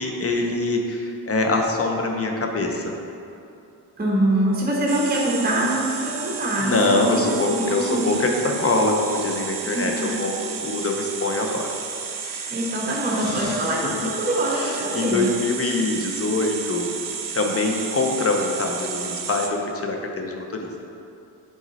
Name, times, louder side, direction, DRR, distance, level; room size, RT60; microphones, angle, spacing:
voice 1, 0.0-2.9 6.6-11.7 12.2-12.6 13.2-14.1 14.5-17.0 17.3-20.7, left 2 dB, 35° left, 2 dB, 0.7 m, -24 dB
voice 2, 4.0-8.2 9.7-10.2 12.5-15.3, right 1 dB, 25° right, -4 dB, 1.1 m, -24 dB
sound 1, 4.9-19.5, right 6 dB, 55° right, 0.7 m, -32 dB
6.1 x 3.9 x 4.0 m, 2.7 s
cardioid pair, 90°, 40 cm